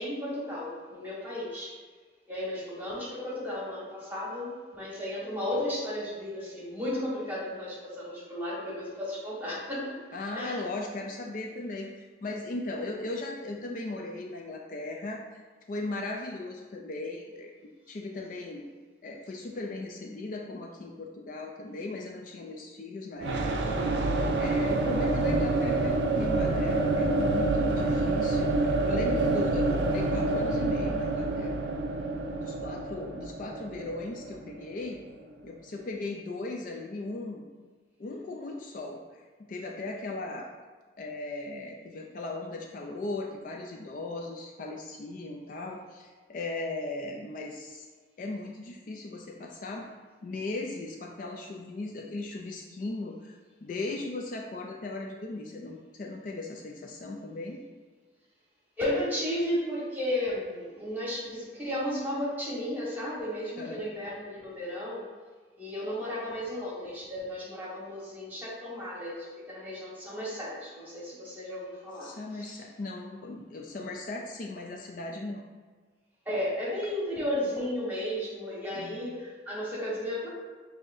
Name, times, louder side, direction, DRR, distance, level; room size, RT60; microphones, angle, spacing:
voice 1, 0.0-1.7 2.3-10.0 10.3-10.6 58.8-65.1 65.6-72.6 76.2-80.3, left 1 dB, 10° right, -7 dB, 1.4 m, -34 dB
voice 2, 10.1-15.2 15.7-18.6 19.0-23.8 24.4-31.5 32.4-35.0 35.4-37.5 38.0-39.0 39.5-40.5 41.0-47.9 48.2-49.9 50.2-57.6 63.6-63.9 72.0-75.4 78.7-79.0, left 2 dB, 45° left, 1 dB, 0.4 m, -37 dB
sound 1, 23.2-35.0, right 2 dB, 75° right, 0.5 m, -27 dB
6.5 x 2.7 x 2.6 m, 1.4 s
head